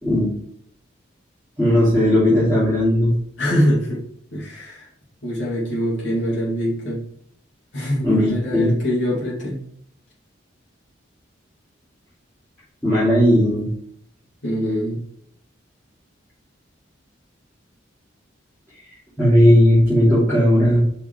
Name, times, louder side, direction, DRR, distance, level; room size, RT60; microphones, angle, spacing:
voice 1, 1.6-3.2 8.0-8.7 12.8-13.7 19.2-20.8, left 1 dB, 10° left, -12 dB, 2.6 m, -16 dB
voice 2, 3.4-4.0 4.3-4.9 5.2-7.0 7.7-9.6 14.4-15.0, equal, 70° left, -7 dB, 2.4 m, -23 dB
5.7 x 5.2 x 3.3 m, 0.68 s
head